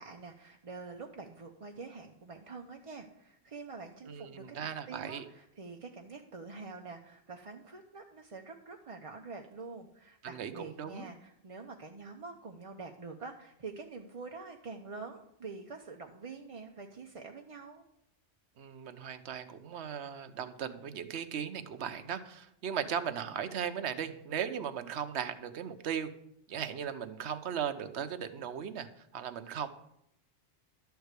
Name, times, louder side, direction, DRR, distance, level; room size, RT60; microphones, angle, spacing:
voice 1, 0.0-17.8, right 4 dB, 35° right, 3 dB, 0.6 m, -46 dB
voice 2, 4.0-5.3 10.2-11.1 18.6-26.1 26.5-29.7, right 8 dB, 65° right, 10 dB, 1.1 m, -37 dB
12.0 x 4.7 x 8.1 m, 0.77 s
omnidirectional pair, 1.2 m